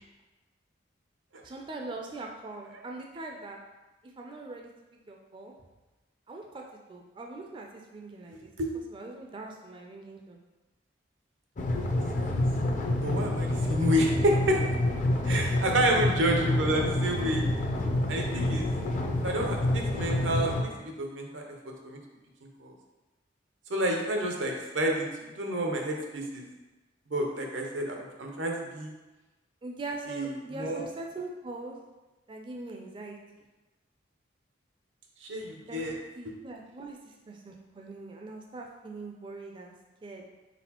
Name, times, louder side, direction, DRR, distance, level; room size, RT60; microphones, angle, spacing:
voice 1, 1.4-3.6 4.2-4.7 5.1-5.5 6.3-6.6 6.9-8.5 8.9-10.4 15.3-15.6 29.6-31.8 32.3-33.2 35.7-35.9 36.1-39.7 40.0-40.2, right 2 dB, 25° right, 1 dB, 0.3 m, -41 dB
sound 1, 11.6-20.6, left 1 dB, 40° left, 0.4 m, -28 dB
voice 2, 11.9-12.4 13.0-14.6 15.2-17.4 18.1-18.7 19.2-21.4 21.8-22.0 22.6-22.7 23.7-25.1 25.4-26.4 27.1-28.9 30.1-30.8 35.2-35.9, right 1 dB, 90° right, 1 dB, 0.7 m, -29 dB
4.0 x 3.9 x 2.9 m, 1.1 s
head